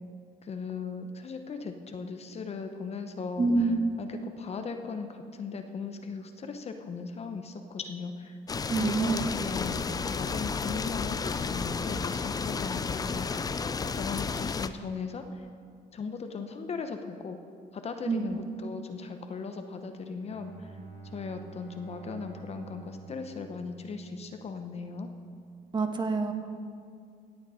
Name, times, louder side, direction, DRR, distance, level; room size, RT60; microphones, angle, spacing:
voice 1, 0.4-3.7 4.0-8.4 8.8-13.6 13.9-15.5 15.9-17.4 17.7-20.8 21.1-25.1, left 4 dB, 40° left, 6 dB, 0.9 m, -38 dB
voice 2, 3.4-3.9 8.7-9.3 18.1-18.4 25.7-26.3, right 3 dB, 25° right, 5 dB, 1.3 m, -27 dB
sound 1, 8.5-14.7, left 5 dB, 20° left, 0.5 m, -32 dB
Bowed string instrument, 20.2-24.7, right 5 dB, 75° right, 3.1 m, -49 dB
17.0 x 8.5 x 5.0 m, 2.3 s
cardioid pair, 110°, 17 cm